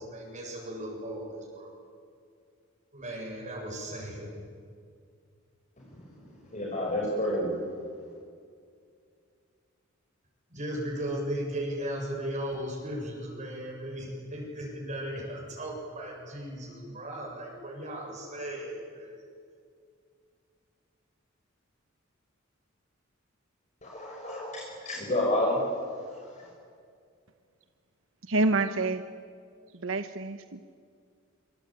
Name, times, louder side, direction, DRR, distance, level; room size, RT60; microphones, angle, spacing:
voice 1, 0.0-1.7 2.9-4.3 10.5-19.2, right 1 dB, 40° right, -2 dB, 7.2 m, -36 dB
voice 2, 5.9-7.7 23.8-26.5, left 1 dB, 35° left, -2 dB, 5.6 m, -31 dB
voice 3, 28.2-29.0 29.7-30.7, right 2 dB, 80° right, 9 dB, 1.1 m, -28 dB
25.5 x 25.0 x 9.0 m, 2.2 s
head